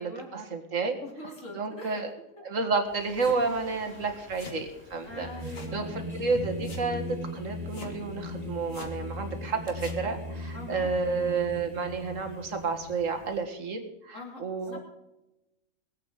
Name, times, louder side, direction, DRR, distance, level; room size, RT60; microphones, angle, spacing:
voice 1, 0.0-1.0 1.5-2.1 2.4-5.3 5.7-7.0 7.3-14.8, right 4 dB, 70° right, 4 dB, 2.2 m, -31 dB
voice 2, 1.0-2.0 5.1-6.1 10.5-10.9 14.1-14.4 14.7-14.8, left 2 dB, 70° left, 1 dB, 3.4 m, -43 dB
Singing, 2.9-13.4, left 1 dB, 30° right, 3.9 m, -39 dB
sound 1, 3.2-3.4 4.3-4.6 5.4-5.8 6.1-6.2 6.6-6.9 7.7-8.0 8.7-9.0 9.7-10.0, left 3 dB, 50° left, 2.0 m, -45 dB
20.5 x 8.4 x 5.5 m, 0.96 s
omnidirectional pair, 1.4 m